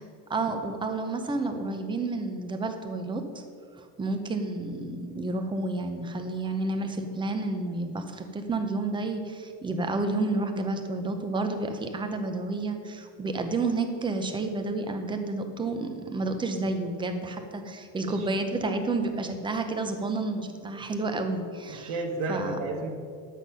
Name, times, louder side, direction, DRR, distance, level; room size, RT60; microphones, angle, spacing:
voice 1, 0.3-3.3 3.8-21.9 22.3-22.6, right 2 dB, 10° right, 6 dB, 0.6 m, -30 dB
voice 2, 21.7-22.9, right 3 dB, 90° right, 1 dB, 1.5 m, -32 dB
10.5 x 8.3 x 5.5 m, 2.2 s
cardioid pair, 165°, 42 cm